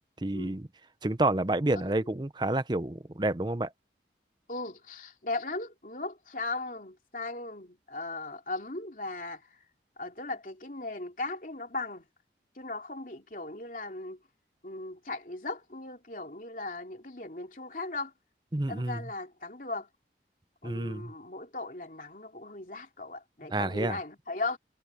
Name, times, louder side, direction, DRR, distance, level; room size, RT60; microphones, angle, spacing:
voice 1, 0.2-0.7 1.0-3.7 18.5-19.0 20.6-21.1 23.5-24.0, right 2 dB, 25° right, 0.7 m, -29 dB
voice 2, 1.7-2.1 4.5-9.5 10.0-12.0 12.6-14.2 14.6-18.1 18.7-19.9 20.6-24.6, left 2 dB, 50° left, 3.2 m, -38 dB
head